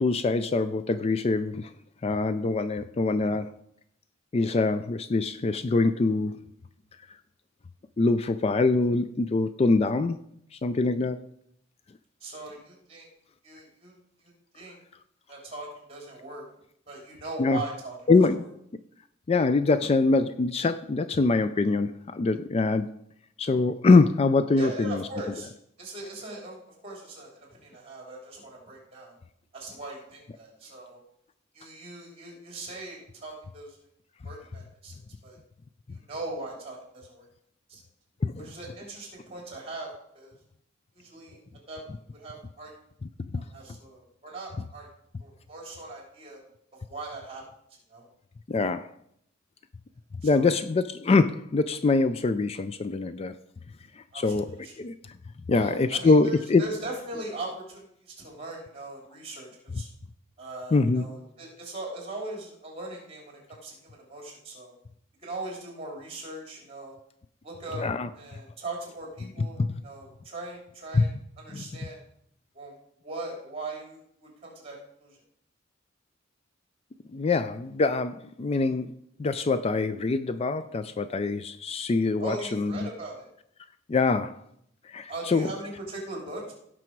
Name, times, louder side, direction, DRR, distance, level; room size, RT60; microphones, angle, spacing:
voice 1, 0.0-1.7 2.0-3.5 4.3-6.4 8.0-10.2 10.6-11.2 17.4-17.6 18.1-18.4 19.3-23.0 23.4-25.0 38.2-38.5 43.3-43.4 48.5-48.9 50.2-53.3 54.0-54.5 54.8-54.9 55.5-56.6 59.7-59.8 60.7-61.0 67.8-68.1 69.6-69.7 70.9-71.1 71.5-71.6 77.1-78.9 79.2-82.9 83.9-84.4 84.8-85.5, left 3 dB, 30° left, 12 dB, 0.3 m, -24 dB
voice 2, 12.2-13.1 13.4-13.9 14.2-14.8 15.3-16.4 16.9-17.9 18.4-18.5 24.6-25.5 25.8-29.1 29.5-31.0 31.5-33.8 34.2-35.4 35.9-37.2 37.7-37.8 38.4-40.4 40.9-41.4 41.7-41.8 42.1-42.7 43.5-44.9 45.2-46.4 46.7-47.4 47.9-48.1 50.2-50.5 54.1-54.7 55.5-59.9 60.4-64.8 65.2-67.0 67.4-67.8 68.1-71.1 71.4-72.0 72.5-72.7 73.0-74.7 75.0-75.2 82.2-83.3 85.1-86.5, right 2 dB, 30° right, -1 dB, 3.3 m, -40 dB
16.5 x 6.1 x 4.6 m, 0.72 s
head